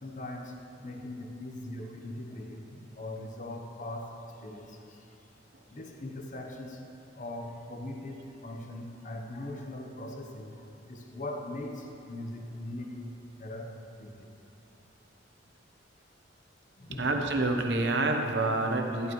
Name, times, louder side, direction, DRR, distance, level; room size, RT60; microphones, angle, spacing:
voice 1, 0.0-5.1 5.7-6.9 7.1-14.3 16.8-17.1, left 1 dB, 40° left, 3 dB, 0.9 m, -41 dB
voice 2, 17.0-19.1, right 2 dB, 60° right, 3 dB, 0.9 m, -27 dB
12.0 x 11.0 x 3.1 m, 2.9 s
head